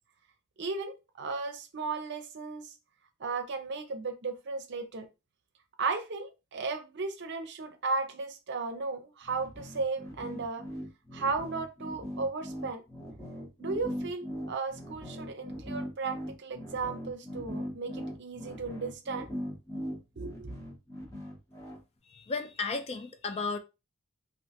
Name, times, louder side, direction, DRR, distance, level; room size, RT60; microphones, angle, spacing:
voice 1, 0.6-2.7 3.2-5.1 5.8-10.7 11.1-12.8 13.6-19.3 20.2-20.5, right 4 dB, 55° right, 0.6 m, -35 dB
sound 1, 9.2-21.8, equal, 15° left, 0.8 m, -40 dB
voice 2, 22.1-23.6, left 4 dB, 30° left, 0.4 m, -34 dB
3.3 x 2.6 x 2.8 m
head